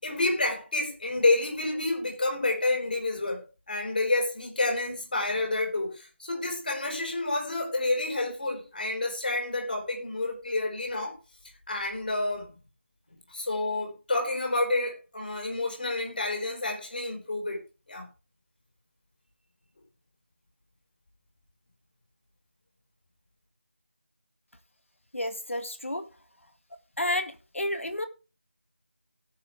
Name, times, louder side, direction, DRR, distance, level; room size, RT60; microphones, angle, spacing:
voice 1, 0.0-11.1 11.7-12.6 13.3-17.6 17.9-18.1, left 2 dB, 45° left, 4.9 m, -29 dB
voice 2, 25.1-26.0 27.0-28.0, left 1 dB, 90° left, 1.9 m, -31 dB
18.5 x 6.4 x 3.5 m
figure-of-eight pair, 175°, 7 cm